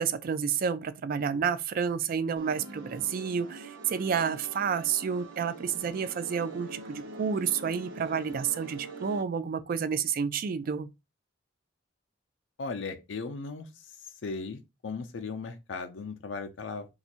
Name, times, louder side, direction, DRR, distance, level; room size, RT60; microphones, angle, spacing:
voice 1, 0.0-10.9, right 7 dB, 50° right, 0.3 m, -30 dB
sound 1, 2.4-9.2, right 3 dB, 90° right, 0.7 m, -44 dB
voice 2, 12.6-13.9 14.2-16.9, left 4 dB, 75° left, 0.5 m, -37 dB
2.5 x 2.4 x 4.1 m
head